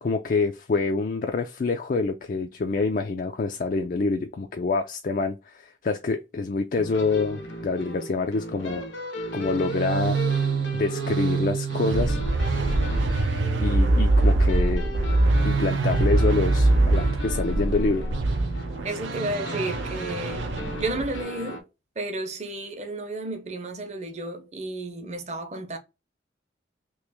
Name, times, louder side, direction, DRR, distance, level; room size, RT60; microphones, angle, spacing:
voice 1, 0.0-8.8 9.3-10.2 10.7-12.2 13.6-14.8 15.4-18.0, left 3 dB, 45° left, 0.3 m, -26 dB
sound 1, 6.7-21.6, equal, 85° left, 0.9 m, -36 dB
sound 2, 9.4-21.2, right 2 dB, 75° right, 0.6 m, -24 dB
voice 2, 18.8-20.5 20.8-21.6 22.0-25.8, right 2 dB, 35° right, 0.7 m, -32 dB
3.1 x 2.9 x 3.4 m
head